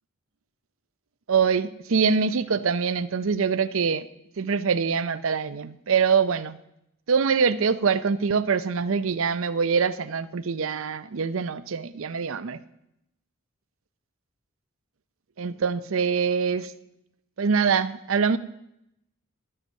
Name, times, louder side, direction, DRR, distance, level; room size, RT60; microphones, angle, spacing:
voice 1, 1.3-4.1 4.4-6.6 7.1-12.6 15.4-16.7 17.4-18.4, right 5 dB, 75° right, 14 dB, 0.6 m, -24 dB
12.0 x 8.0 x 6.3 m, 0.81 s
head